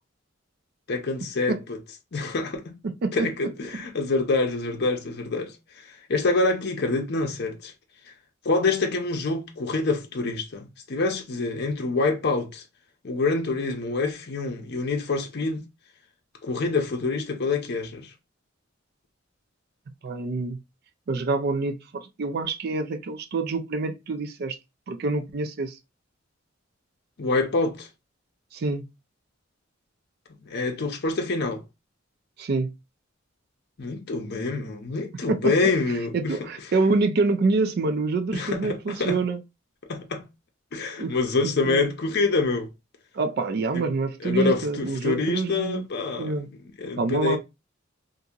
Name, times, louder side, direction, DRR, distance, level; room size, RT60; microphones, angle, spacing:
voice 1, 0.9-1.8 2.1-2.7 3.1-5.5 6.1-7.7 8.4-12.6 13.0-15.6 16.4-18.1 27.2-27.9 30.4-31.6 33.8-36.4 38.3-39.2 39.9-40.2 40.7-42.7 43.7-43.8 44.2-46.5 46.8-47.4, left 3 dB, 55° left, 0.6 m, -26 dB
voice 2, 2.8-3.3 3.7-3.8 20.0-20.6 21.1-24.6 24.9-25.7 28.5-28.8 32.4-32.7 35.3-35.7 36.1-39.4 41.0-41.2 41.4-41.9 43.1-45.8 46.2-46.5 47.0-47.4, right 3 dB, 50° right, 0.4 m, -26 dB
2.8 x 2.6 x 2.3 m
head